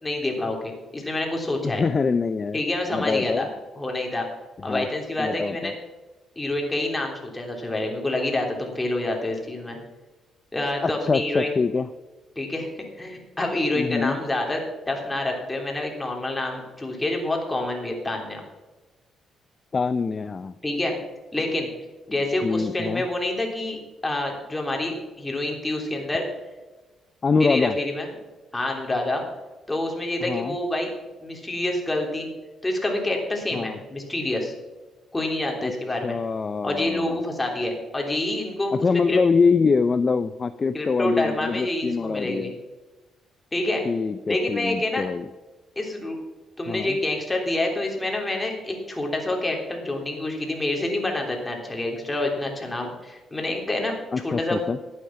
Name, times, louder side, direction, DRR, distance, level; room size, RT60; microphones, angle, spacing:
voice 1, 0.0-1.8 2.5-3.5 3.7-4.3 4.6-5.7 6.3-9.8 10.5-11.5 12.3-12.7 13.0-18.4 20.6-20.9 21.3-21.7 22.1-26.3 27.4-28.1 28.5-29.2 29.7-30.9 31.2-32.3 32.6-34.5 35.1-36.2 36.6-38.7 39.1-39.2 40.7-42.5 43.5-43.8 44.3-45.0 45.7-46.2 46.6-54.0 54.2-54.6, left 2 dB, 15° left, 1 dB, 3.3 m, -27 dB
voice 2, 1.6-2.6 2.9-3.5 4.6-4.9 5.2-5.7 10.8-11.9 13.7-14.2 19.7-20.5 22.4-23.1 27.2-27.8 30.2-30.6 33.5-33.8 35.6-35.7 36.0-37.2 38.7-42.5 43.8-45.3 46.7-47.0 54.1-54.8, left 4 dB, 35° left, 12 dB, 0.5 m, -24 dB
11.5 x 9.3 x 5.8 m, 1.2 s
cardioid pair, 90°, 0 cm